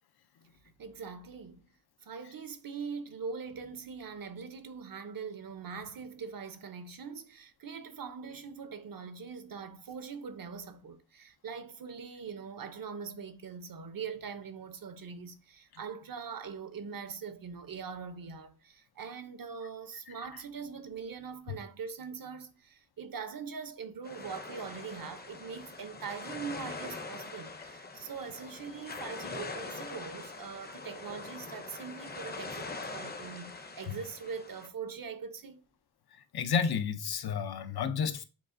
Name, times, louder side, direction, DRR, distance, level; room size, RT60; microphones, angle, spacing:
voice 1, 0.8-1.7 2.0-35.6, right 5 dB, 65° right, 0.6 m, -42 dB
sound 1, 24.0-34.7, left 3 dB, 25° left, 0.5 m, -43 dB
voice 2, 36.1-38.2, left 6 dB, 85° left, 0.5 m, -31 dB
7.0 x 2.4 x 2.5 m
wide cardioid pair, 65°, 37 cm